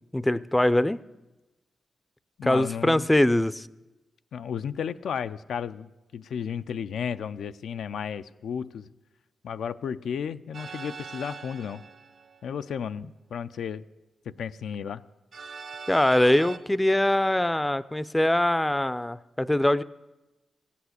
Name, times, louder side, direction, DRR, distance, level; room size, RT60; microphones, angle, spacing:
voice 1, 0.1-1.0 2.4-3.7 15.9-19.8, left 1 dB, 10° left, 17 dB, 0.4 m, -23 dB
voice 2, 2.4-3.1 4.3-8.9 9.4-11.8 12.4-13.8 14.3-15.0, left 7 dB, 90° left, 11 dB, 0.4 m, -33 dB
sound 1, 10.5-12.6 15.3-16.6, right 5 dB, 65° right, 1.0 m, -41 dB
15.5 x 8.4 x 8.0 m, 1.1 s
cardioid pair, 90°, 0 cm